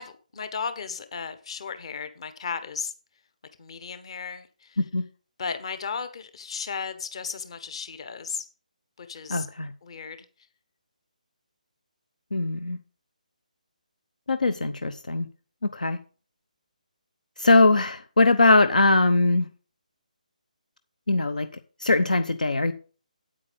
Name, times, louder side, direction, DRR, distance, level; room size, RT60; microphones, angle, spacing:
voice 1, 0.0-2.9 3.6-4.8 5.4-8.4 9.0-9.5 9.8-10.3, left 5 dB, 40° left, 1.4 m, -35 dB
voice 2, 9.3-9.7 12.3-12.8 14.3-15.3 15.6-16.0 17.4-19.5 21.1-21.5 21.8-22.7, left 2 dB, 65° left, 0.8 m, -21 dB
8.9 x 8.7 x 5.3 m
figure-of-eight pair, 145°, 4 cm